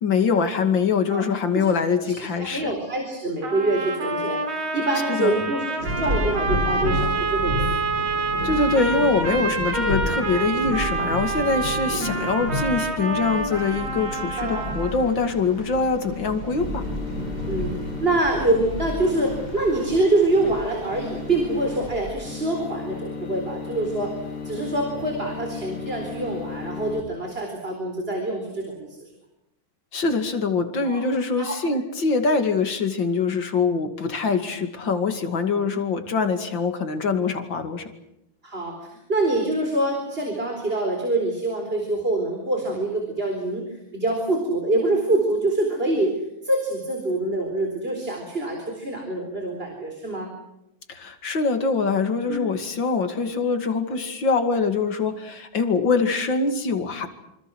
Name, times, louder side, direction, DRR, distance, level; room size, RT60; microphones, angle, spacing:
voice 1, 0.0-2.7 5.1-5.5 8.4-16.9 29.9-37.9 50.9-57.1, left 4 dB, 60° left, 7 dB, 3.0 m, -24 dB
voice 2, 2.0-7.8 12.0-12.3 14.4-15.0 17.5-17.7 18.0-24.1 24.4-29.1 30.8-31.0 31.4-31.6 38.4-50.3 52.3-52.4, right 2 dB, 25° right, 2 dB, 4.4 m, -25 dB
sound 1, 3.4-15.1, right 3 dB, 75° right, 4.3 m, -27 dB
sound 2, 5.8-22.1, equal, 45° right, 4.8 m, -32 dB
sound 3, 16.6-27.0, left 5 dB, 90° left, 3.9 m, -35 dB
27.0 x 26.0 x 6.3 m, 0.85 s
omnidirectional pair, 2.3 m